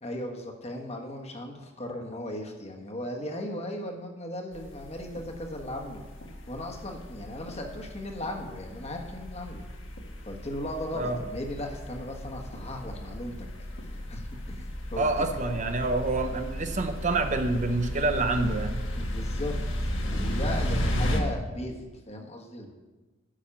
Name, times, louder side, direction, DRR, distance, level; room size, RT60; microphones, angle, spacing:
voice 1, 0.0-6.0 6.5-9.6 10.2-13.5 13.8-15.3 18.9-19.5 20.1-22.7, left 1 dB, 30° left, 2 dB, 1.3 m, -37 dB
sound 1, 4.5-21.2, equal, 65° left, 1.5 m, -34 dB
voice 2, 15.0-18.8, right 2 dB, 35° right, 7 dB, 0.6 m, -27 dB
10.0 x 6.2 x 7.1 m, 1.2 s
head